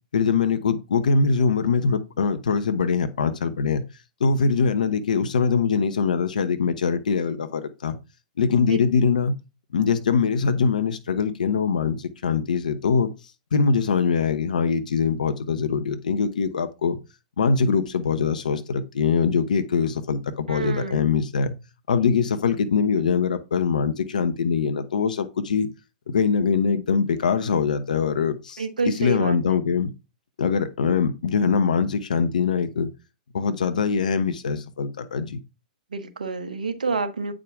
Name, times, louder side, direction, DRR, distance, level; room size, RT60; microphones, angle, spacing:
voice 1, 0.1-3.8 4.2-8.0 8.4-9.3 9.7-13.1 13.5-17.0 17.4-21.5 21.9-25.7 26.1-29.9 30.4-32.9 33.3-35.4, left 5 dB, 75° left, 1.0 m, -23 dB
voice 2, 20.5-21.1 28.6-29.6 35.9-37.3, right 4 dB, 85° right, 1.2 m, -28 dB
8.6 x 5.0 x 3.6 m
hypercardioid pair, 110°, 4 cm